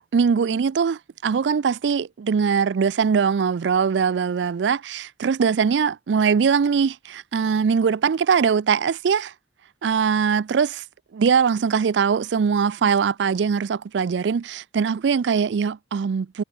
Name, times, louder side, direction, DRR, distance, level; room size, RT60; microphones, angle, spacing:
voice 1, 0.1-9.3 9.8-10.8 11.1-16.4, right 6 dB, 80° right, 0.4 m, -21 dB
head